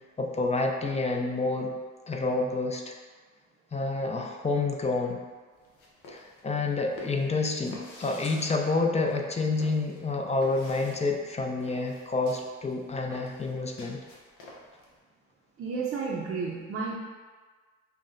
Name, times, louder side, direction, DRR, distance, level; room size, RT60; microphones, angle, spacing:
voice 1, 0.2-1.7 2.1-3.0 3.7-5.2 6.1-14.0, left 3 dB, 20° left, 2 dB, 0.4 m, -28 dB
sound 1, 5.6-14.9, left 1 dB, 85° left, 0.7 m, -48 dB
voice 2, 15.6-16.9, right 4 dB, 45° right, -4 dB, 0.5 m, -32 dB
5.6 x 2.2 x 2.5 m, 1.4 s
cardioid pair, 90°, 30 cm